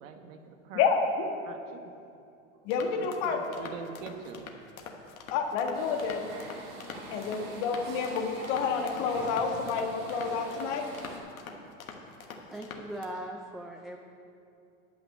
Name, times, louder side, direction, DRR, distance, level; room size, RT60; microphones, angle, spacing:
voice 1, 0.0-0.9 1.4-1.9 3.0-4.4, right 6 dB, 65° right, 6 dB, 1.2 m, -43 dB
voice 2, 0.7-1.3 2.6-3.7 5.3-6.3 7.1-10.9, left 5 dB, 55° left, 4 dB, 1.5 m, -29 dB
sound 1, 2.7-13.1, left 5 dB, 90° left, 1.3 m, -45 dB
sound 2, 5.7-11.2, right 2 dB, 45° right, 2.4 m, -44 dB
voice 3, 12.5-14.0, right 1 dB, ahead, 1 dB, 0.3 m, -40 dB
10.5 x 6.0 x 8.1 m, 2.6 s
hypercardioid pair, 100°, 40 cm